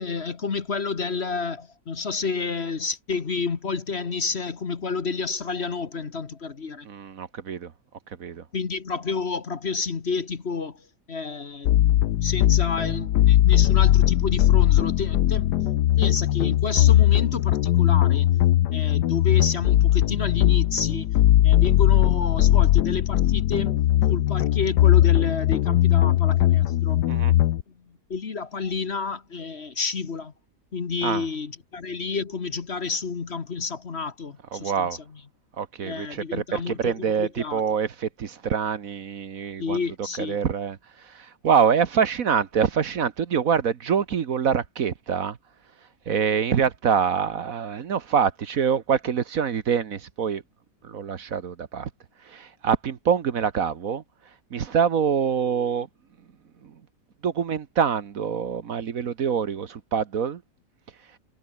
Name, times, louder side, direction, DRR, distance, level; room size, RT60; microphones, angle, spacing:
voice 1, 0.0-6.9 8.5-15.6 16.0-18.3 18.7-21.1 21.4-23.8 24.1-27.0 28.1-30.3 30.7-34.9 35.8-37.6 39.6-40.4, left 4 dB, 40° left, 1.5 m, -30 dB
voice 2, 6.8-7.7 8.1-8.4 27.1-27.3 31.0-31.2 34.5-35.0 35.6-39.8 40.2-45.4 46.1-50.4 50.8-51.9 52.2-55.9 56.6-56.8 57.2-60.4, right 7 dB, 60° right, 1.5 m, -25 dB
sound 1, 11.7-27.6, left 13 dB, 85° left, 1.4 m, -19 dB
omnidirectional pair, 1.7 m